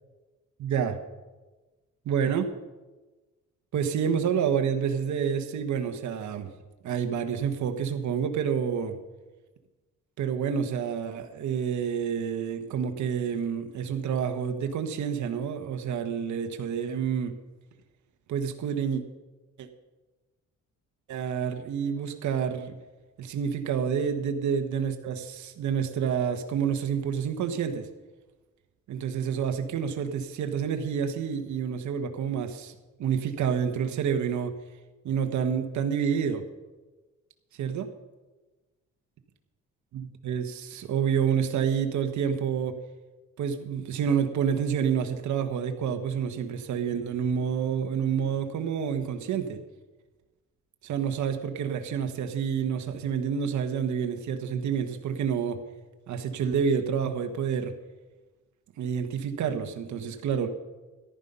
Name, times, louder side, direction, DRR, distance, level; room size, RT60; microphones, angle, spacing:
voice 1, 0.6-1.0 2.0-2.5 3.7-6.5 6.8-9.0 10.2-17.3 18.3-19.0 19.6-19.7 21.1-22.7 23.2-27.9 28.9-34.5 35.0-36.4 37.6-37.8 39.9-42.7 43.4-49.6 50.8-55.6 56.1-57.7 58.8-60.5, right 7 dB, 70° right, 6 dB, 1.3 m, -28 dB
14.0 x 11.0 x 5.5 m, 1.2 s
cardioid pair, 90°, 30 cm